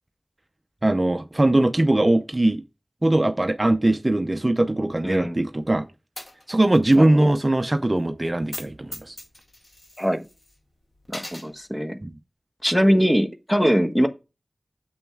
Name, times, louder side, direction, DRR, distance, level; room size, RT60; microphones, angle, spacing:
voice 1, 0.8-2.6 3.0-5.9 6.5-9.2 12.0-12.1, right 1 dB, 35° right, 0.6 m, -21 dB
voice 2, 5.0-5.4 6.9-7.3 10.0-10.2 11.1-12.0 12.6-14.1, equal, 10° left, 1.2 m, -22 dB
Coin (dropping), 6.2-7.0 7.3-7.4 8.4-8.7 8.9-10.5 11.0-11.5, left 1 dB, 55° left, 2.5 m, -39 dB
8.8 x 7.0 x 2.3 m
wide cardioid pair, 45°, 0 cm